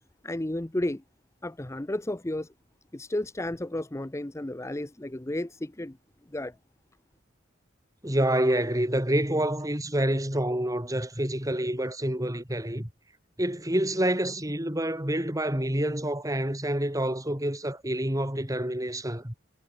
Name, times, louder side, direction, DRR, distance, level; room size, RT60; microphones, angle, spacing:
voice 1, 0.2-1.0 1.4-2.5 2.9-6.0 6.3-6.5, left 1 dB, 15° left, 0.7 m, -32 dB
voice 2, 8.0-12.9 13.4-19.3, right 1 dB, 15° right, 3.6 m, -27 dB
head